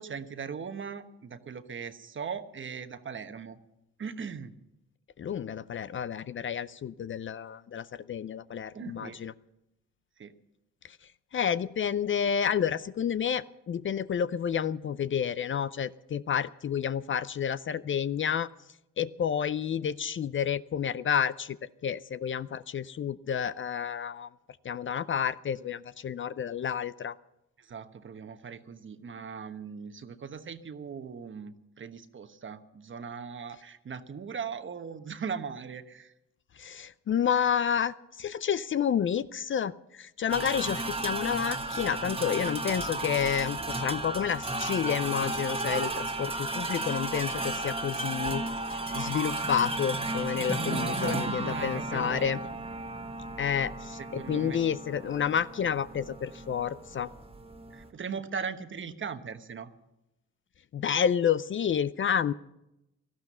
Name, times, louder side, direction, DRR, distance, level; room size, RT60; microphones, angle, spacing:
voice 1, 0.0-3.6 4.0-4.5 8.7-9.2 10.2-10.3 27.6-36.1 50.6-52.3 54.0-54.6 57.7-59.7, right 6 dB, 40° right, 9 dB, 1.2 m, -39 dB
voice 2, 5.2-9.3 11.3-18.5 19.0-21.6 21.8-24.3 24.6-27.2 36.6-48.4 48.9-52.4 53.4-57.1 60.7-62.3, left 8 dB, 40° left, 15 dB, 0.5 m, -30 dB
sound 1, 40.3-57.9, right 2 dB, 20° right, 1.6 m, -34 dB
18.0 x 13.0 x 5.6 m, 0.88 s
cardioid pair, 90°, 30 cm